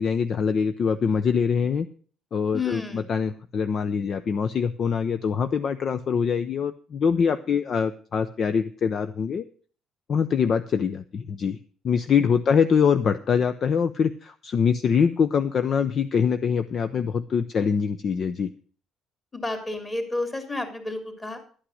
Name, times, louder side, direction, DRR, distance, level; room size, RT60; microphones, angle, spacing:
voice 1, 0.0-1.9 2.3-9.4 10.1-11.6 11.8-18.5, left 6 dB, 40° left, 10 dB, 0.6 m, -24 dB
voice 2, 2.5-3.1 19.3-21.4, left 3 dB, 15° left, 5 dB, 2.6 m, -31 dB
11.5 x 8.8 x 6.3 m, 0.42 s
cardioid pair, 150°, 0 cm